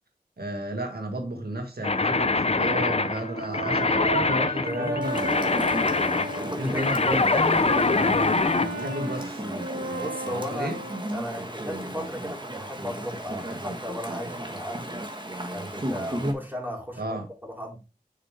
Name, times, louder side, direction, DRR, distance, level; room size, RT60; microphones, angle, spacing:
voice 1, 0.4-5.5 6.6-8.4 8.8-9.4 10.5-10.8 17.0-17.3, right 1 dB, 85° right, 1.7 m, -32 dB
sound 1, 1.8-8.7, left 3 dB, 40° left, 0.5 m, -24 dB
Brass instrument, 2.7-6.7 7.2-11.3, right 1 dB, 70° right, 1.7 m, -35 dB
voice 2, 4.6-5.1 6.1-7.5 9.9-10.7 11.1-14.9 15.5-17.8, equal, 10° right, 3.1 m, -36 dB
Chatter / Stream, 5.0-16.3, right 1 dB, 30° right, 1.6 m, -35 dB
6.7 x 5.7 x 3.4 m
wide cardioid pair, 40°, 16 cm